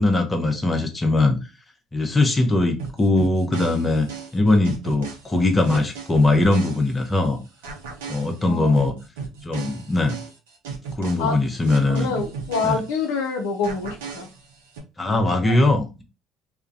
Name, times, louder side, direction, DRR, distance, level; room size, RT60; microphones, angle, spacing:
voice 1, 0.0-1.4 1.9-4.1 4.3-7.4 8.1-8.9 9.4-10.2 11.0-12.1 12.6-12.8 15.0-16.0, left 2 dB, 20° left, 4 dB, 0.6 m, -20 dB
sound 1, 2.8-7.3 7.6-13.3 13.6-14.8, right 5 dB, 80° right, 0.5 m, -36 dB
voice 2, 8.4-8.9 11.2-11.4 11.9-14.3 15.1-15.6, left 4 dB, 80° left, 2 dB, 0.5 m, -27 dB
2.4 x 2.1 x 2.5 m, 0.28 s
hypercardioid pair, 60°, 0 cm